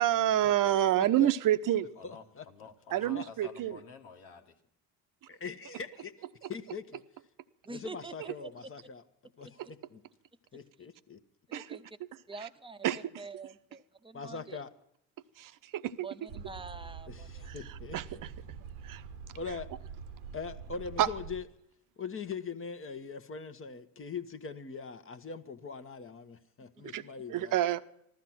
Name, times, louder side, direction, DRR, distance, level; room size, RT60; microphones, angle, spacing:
voice 1, 0.0-1.9 2.9-3.8 6.4-6.5 9.6-9.7 11.5-11.8 12.8-13.0 15.4-16.1 17.5-18.3 18.8-19.0 21.0-21.1 26.9-27.0 27.3-27.8, right 12 dB, 45° right, 12 dB, 1.0 m, -28 dB
voice 2, 1.0-1.3 2.0-2.5 3.1-3.3 5.3-7.0 7.7-9.0 9.4-10.0 10.5-11.2 14.1-14.7 17.1-18.0 19.3-19.7 20.3-21.4 22.0-27.6, left 5 dB, 30° left, 9 dB, 1.2 m, -41 dB
voice 3, 2.0-4.6, left 4 dB, 80° left, 2 dB, 1.8 m, -51 dB
voice 4, 7.7-8.1 8.4-8.5 11.7-11.9 12.3-14.6 16.0-17.5 26.8-27.0, right 4 dB, 10° right, 11 dB, 1.0 m, -46 dB
sound 1, 16.3-21.4, right 6 dB, 70° right, 1.2 m, -45 dB
15.0 x 13.0 x 6.0 m, 0.75 s
hypercardioid pair, 70°, 45 cm